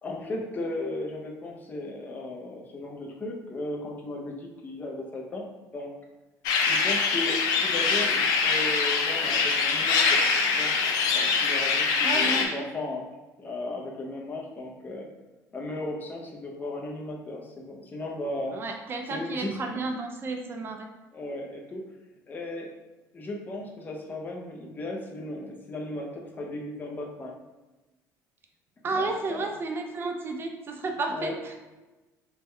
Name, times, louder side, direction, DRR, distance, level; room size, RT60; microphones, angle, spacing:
voice 1, 0.0-5.5 5.7-5.9 6.7-10.7 11.1-13.0 13.4-15.1 15.5-18.6 19.1-19.6 21.1-21.8 22.3-22.7 23.1-27.3 28.8-29.5 31.1-31.4, left 2 dB, 30° left, 0 dB, 0.5 m, -36 dB
sound 1, 6.4-12.4, left 5 dB, 80° left, 0.4 m, -24 dB
voice 2, 12.0-12.6 18.5-20.9 28.8-31.5, right 3 dB, 35° right, 3 dB, 0.3 m, -32 dB
3.4 x 2.2 x 3.1 m, 1.1 s
cardioid pair, 125°, 7 cm